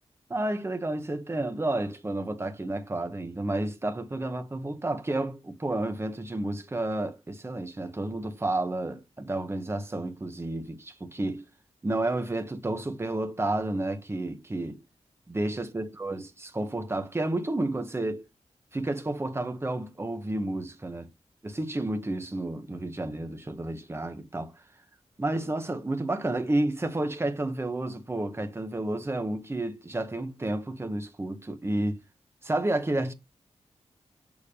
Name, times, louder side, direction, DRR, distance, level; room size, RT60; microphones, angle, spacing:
voice 1, 0.3-11.5 11.8-14.8 15.3-18.2 18.7-21.1 21.4-24.5 25.2-32.0 32.4-33.1, right 2 dB, 20° right, 1.2 m, -31 dB
6.7 x 3.5 x 5.1 m
wide cardioid pair, 120°, 12 cm